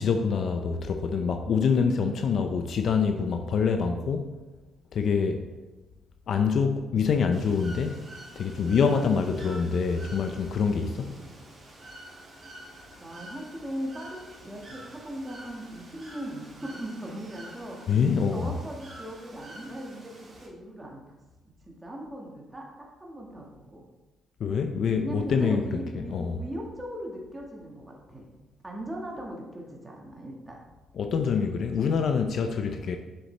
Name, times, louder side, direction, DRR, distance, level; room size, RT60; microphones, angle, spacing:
voice 1, 0.0-4.3 4.9-5.4 6.3-8.0 8.4-11.2 17.9-18.5 24.4-25.6 25.9-26.4 31.0-33.0, left 5 dB, 60° left, 6 dB, 0.5 m, -25 dB
Bird / Water, 7.3-20.5, right 1 dB, 40° right, 2.4 m, -48 dB
voice 2, 11.0-11.3 13.0-18.0 18.3-21.0 21.6-22.6 23.0-23.8 24.9-28.3 28.6-30.6, right 1 dB, 15° right, -1 dB, 1.6 m, -39 dB
7.2 x 6.7 x 3.3 m, 1.2 s
cardioid pair, 90°, 0 cm